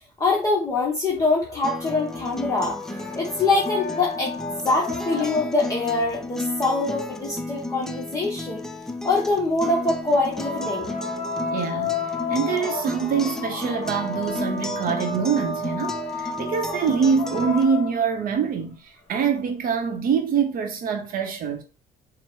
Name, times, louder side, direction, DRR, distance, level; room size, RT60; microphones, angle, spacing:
voice 1, 0.2-8.6 9.0-11.0, left 3 dB, 20° left, 0.9 m, -24 dB
sound 1, 1.0-5.8 10.1-18.4 19.7-19.8, left 3 dB, 40° left, 1.3 m, -33 dB
Acoustic guitar, 1.6-17.6, left 2 dB, 5° left, 0.4 m, -34 dB
voice 2, 11.5-12.0 12.3-21.6, right 6 dB, 55° right, 0.7 m, -24 dB
4.3 x 2.0 x 4.5 m
cardioid pair, 110°, 17 cm